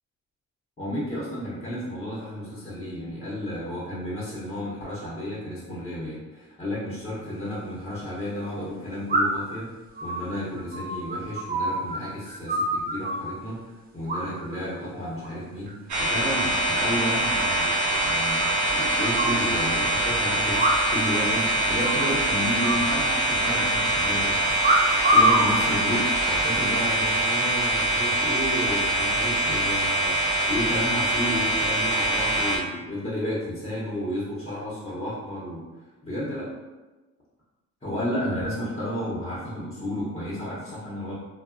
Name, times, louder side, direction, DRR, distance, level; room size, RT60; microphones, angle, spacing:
voice 1, 0.8-9.7 10.0-13.6 13.9-17.7 18.0-24.5 25.1-35.6 36.0-36.5 37.8-41.1, equal, 20° left, -8 dB, 0.8 m, -32 dB
sound 1, 7.3-7.4 9.1-9.5 10.0-12.0 12.2-13.3 14.1-14.6 14.9-15.3 15.7-16.2 16.5-16.6 16.8-16.9 17.2-17.3 17.6-17.7 18.4-19.4 20.5-21.1 21.4-21.5 21.8-22.1 22.6-23.5 24.6-25.5 26.2-26.6, right 1 dB, 30° right, 0.5 m, -25 dB
sound 2, 15.9-32.6, right 1 dB, 75° right, 0.7 m, -24 dB
2.6 x 2.1 x 2.5 m, 1.2 s
cardioid pair, 90°, 30 cm